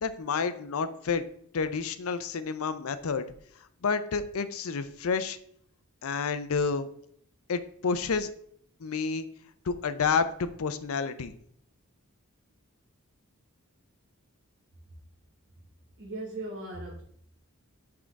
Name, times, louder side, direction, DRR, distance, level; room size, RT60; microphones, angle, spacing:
voice 1, 0.0-1.2 1.5-3.3 3.8-5.4 6.0-6.9 7.5-8.3 8.8-9.3 9.7-11.3, left 5 dB, 75° left, 12 dB, 0.5 m, -29 dB
voice 2, 16.0-17.0, right 2 dB, 55° right, -3 dB, 1.2 m, -38 dB
6.0 x 3.8 x 4.6 m, 0.66 s
head